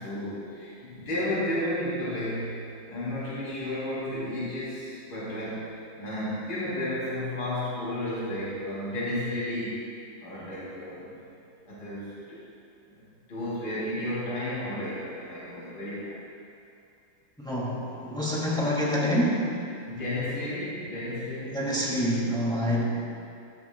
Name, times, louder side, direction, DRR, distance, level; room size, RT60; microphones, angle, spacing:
voice 1, 0.0-2.6 2.9-9.8 10.2-11.1 11.7-12.4 12.9-13.0 13.3-16.2 19.9-21.7, left 1 dB, 70° left, -9 dB, 4.2 m, -32 dB
voice 2, 17.4-19.4 21.5-22.8, equal, ahead, -6 dB, 2.5 m, -26 dB
16.5 x 13.5 x 2.4 m, 2.5 s
omnidirectional pair, 2.2 m